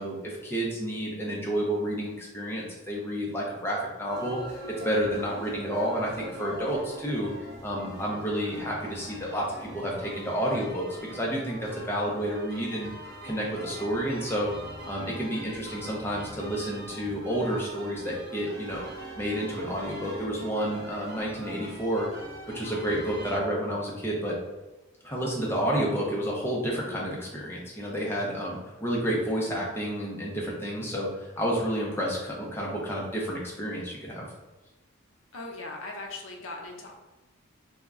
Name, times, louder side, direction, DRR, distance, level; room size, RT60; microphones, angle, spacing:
voice 1, 0.0-4.4 4.8-7.3 7.6-12.9 13.2-14.5 14.9-18.8 19.2-22.1 22.5-24.4 25.0-34.2, equal, 10° left, -3 dB, 0.5 m, -30 dB
sound 1, 4.1-23.4, right 1 dB, 55° right, 0.7 m, -43 dB
voice 2, 35.3-36.9, left 2 dB, 80° left, 1 dB, 0.5 m, -39 dB
2.3 x 2.1 x 3.4 m, 1.1 s
head